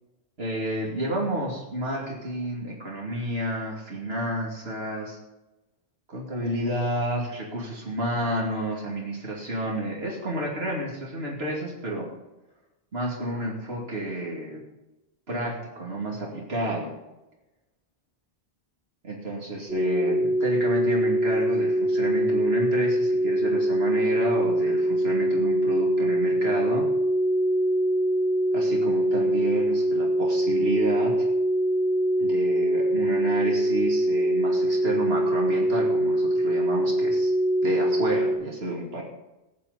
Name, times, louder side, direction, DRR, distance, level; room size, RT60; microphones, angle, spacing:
voice 1, 0.4-5.2 6.1-12.1 12.9-14.6 15.3-16.9 19.0-26.9 28.5-31.3 32.2-37.3 37.6-39.0, right 1 dB, 70° right, -2 dB, 2.8 m, -30 dB
sound 1, 19.7-38.4, right 1 dB, ahead, 2.7 m, -23 dB
15.0 x 10.5 x 4.1 m, 1.0 s
omnidirectional pair, 1.1 m